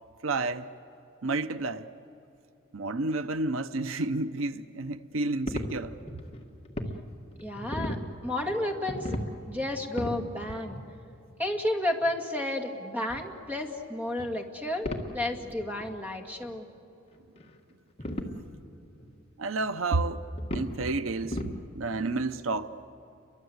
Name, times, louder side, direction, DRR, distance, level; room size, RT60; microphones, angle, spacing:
voice 1, 0.2-0.7 1.2-1.9 2.7-6.0 19.4-20.3 20.5-21.4 21.7-22.7, right 3 dB, 85° right, 0.8 m, -30 dB
sound 1, 5.5-6.9 7.3-8.0 8.7-9.3 9.6-10.2 10.7-10.8 12.0-12.1 13.1-13.2 14.2-14.4 14.8-15.1 15.5-15.6 15.8-15.9 16.4-16.5 17.1-17.5 18.0-18.4 19.0-19.1 19.6-19.7 20.4-20.9 21.2-21.6 21.9-22.0, left 1 dB, 30° left, 1.8 m, -35 dB
voice 2, 7.4-8.0 8.2-9.2 9.5-10.8 11.4-14.9 15.1-16.7, left 1 dB, 10° right, 2.2 m, -31 dB
30.0 x 23.5 x 8.0 m
head